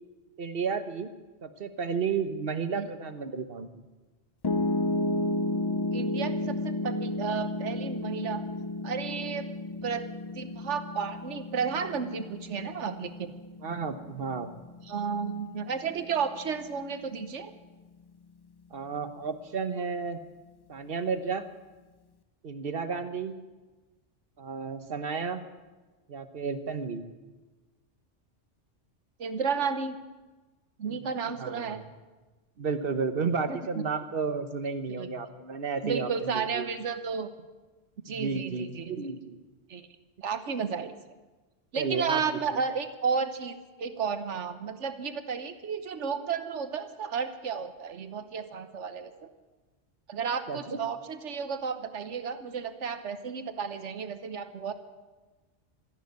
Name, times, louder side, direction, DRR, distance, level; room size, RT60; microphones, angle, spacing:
voice 1, 0.4-1.1 1.4-3.8 13.6-14.5 18.7-20.2 20.7-21.4 22.4-23.3 24.4-25.4 26.1-27.0 30.9-31.1 31.4-31.9 32.6-36.7 38.1-39.4 41.8-42.6 50.5-50.8, right 5 dB, 55° right, 9 dB, 1.2 m, -32 dB
Piano, 4.4-16.6, left 2 dB, 40° left, 0.3 m, -33 dB
voice 2, 5.9-8.4 8.8-9.5 9.8-10.1 10.3-13.3 14.8-17.5 29.2-30.0 30.8-31.8 33.5-33.8 35.0-35.1 35.8-37.3 38.0-39.1 39.7-39.8 40.2-40.9 41.7-49.1 50.1-54.7, right 6 dB, 75° right, 10 dB, 1.3 m, -32 dB
13.5 x 11.0 x 9.6 m, 1.2 s
omnidirectional pair, 1.2 m